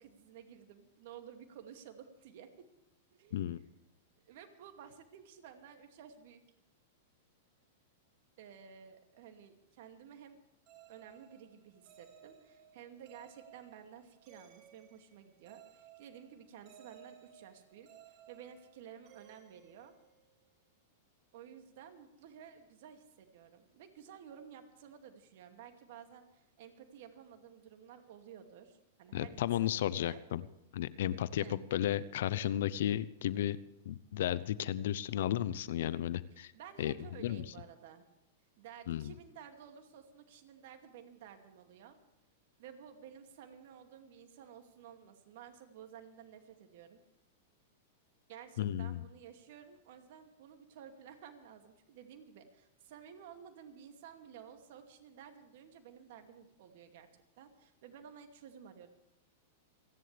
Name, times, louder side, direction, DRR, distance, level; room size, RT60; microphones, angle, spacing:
voice 1, 0.0-2.7 3.2-3.4 4.2-6.4 8.4-10.4 10.9-19.9 21.3-30.2 31.4-31.6 36.5-38.1 38.6-42.0 42.6-47.0 48.3-57.1 57.4-58.9, right 8 dB, 60° right, 6 dB, 2.5 m, -53 dB
sound 1, 10.7-20.5, right 9 dB, 40° right, 2.4 m, -60 dB
voice 2, 29.1-30.4 30.7-33.6 33.8-36.5 36.8-36.9 37.2-37.4 38.9-39.1 48.6-49.0, left 11 dB, 70° left, 18 dB, 0.7 m, -33 dB
29.0 x 11.0 x 3.4 m, 0.92 s
hypercardioid pair, 115°, 0 cm